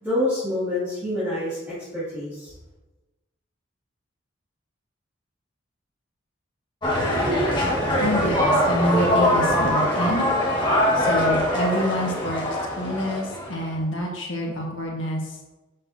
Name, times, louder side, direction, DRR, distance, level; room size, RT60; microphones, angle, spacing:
voice 1, 0.0-2.5, left 1 dB, 10° right, -14 dB, 2.4 m, -27 dB
sound 1, 6.8-13.7, equal, 25° left, 1.5 m, -22 dB
voice 2, 8.0-10.3 10.9-12.4 12.7-15.4, equal, 75° left, -1 dB, 1.6 m, -27 dB
7.2 x 6.2 x 2.8 m, 1.1 s
head